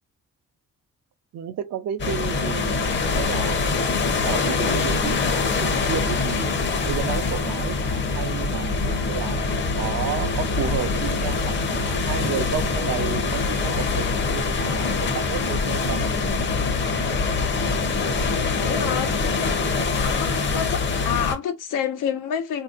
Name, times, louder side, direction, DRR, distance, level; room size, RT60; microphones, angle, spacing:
voice 1, 1.3-3.6 4.2-6.6 6.8-9.4 9.8-16.1, right 9 dB, 55° right, 0.6 m, -32 dB
sound 1, 2.0-21.3, left 4 dB, 40° left, 0.8 m, -24 dB
voice 2, 18.4-19.1 20.0-22.6, left 8 dB, 85° left, 1.0 m, -28 dB
4.2 x 2.8 x 2.5 m
cardioid pair, 155°, 31 cm